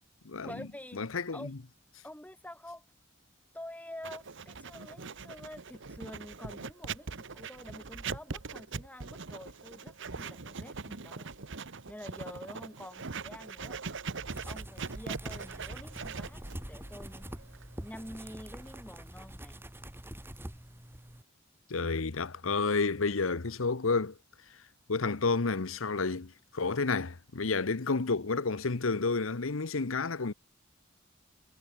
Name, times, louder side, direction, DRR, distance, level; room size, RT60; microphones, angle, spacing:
voice 1, 0.4-1.0 1.3-1.6 2.0-2.8 3.5-11.3 11.9-13.8 14.4-17.3 17.8-19.6, left 1 dB, 10° left, 7.5 m, -47 dB
voice 2, 1.0-1.6 21.7-24.1 24.9-30.3, left 4 dB, 75° left, 1.0 m, -30 dB
Writing, 4.0-18.8, right 4 dB, 65° right, 1.3 m, -41 dB
sound 1, 14.3-21.2, right 1 dB, 10° right, 1.9 m, -45 dB
head